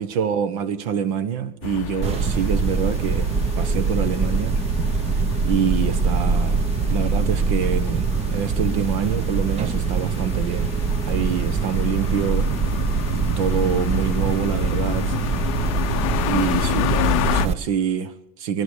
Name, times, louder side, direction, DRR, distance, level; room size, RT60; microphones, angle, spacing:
voice 1, 0.0-3.3 3.6-4.6 5.4-6.6 6.9-10.7 11.0-12.5 13.4-15.2 16.2-18.6, right 7 dB, 65° right, 1.3 m, -26 dB
sound 1, 1.6-17.5, left 19 dB, 65° left, 0.6 m, -30 dB
sound 2, 2.0-17.5, right 5 dB, 35° right, 1.0 m, -23 dB
23.0 x 11.0 x 4.9 m
hypercardioid pair, 95°, 19 cm